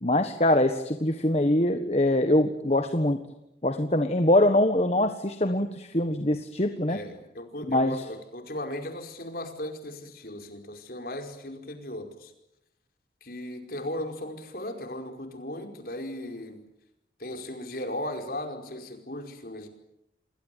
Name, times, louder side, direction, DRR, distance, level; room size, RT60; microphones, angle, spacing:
voice 1, 0.0-3.2 3.6-7.0 7.7-7.9, left 1 dB, 35° left, 7 dB, 1.5 m, -23 dB
voice 2, 6.9-12.3 13.2-16.6 17.2-19.7, left 1 dB, 55° left, 5 dB, 4.9 m, -37 dB
28.5 x 21.5 x 9.3 m, 0.85 s
head